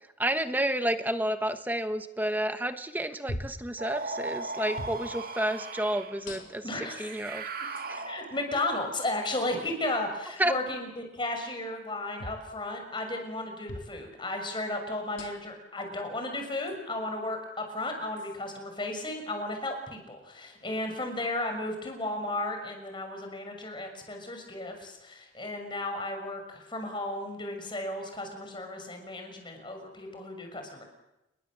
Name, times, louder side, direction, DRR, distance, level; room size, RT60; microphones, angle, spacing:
voice 1, 0.2-8.0 10.4-10.5, right 1 dB, 10° right, 9 dB, 1.1 m, -30 dB
sound 1, 3.3-3.7 4.8-5.0 6.3-6.8 7.8-7.9 9.2-9.4 12.2-12.5 13.7-13.9 15.2-15.6 16.7-16.8 18.2-18.4, left 1 dB, 80° left, 4.2 m, -40 dB
sound 2, 3.8-6.2 6.9-8.6, right 3 dB, 50° right, 2.0 m, -37 dB
voice 2, 6.6-7.3 8.0-30.8, left 2 dB, 25° left, 4 dB, 6.2 m, -34 dB
29.0 x 22.0 x 7.5 m, 0.94 s
head